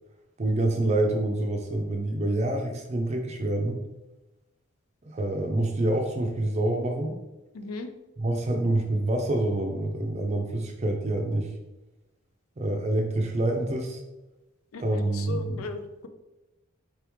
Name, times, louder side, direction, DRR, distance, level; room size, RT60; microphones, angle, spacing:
voice 1, 0.4-3.8 5.0-7.2 8.2-11.5 12.6-14.0 14.8-15.7, right 1 dB, 30° right, 3 dB, 0.5 m, -27 dB
voice 2, 7.5-7.9 14.7-16.1, left 4 dB, 85° left, 7 dB, 0.5 m, -37 dB
4.6 x 3.0 x 3.5 m, 1.0 s
head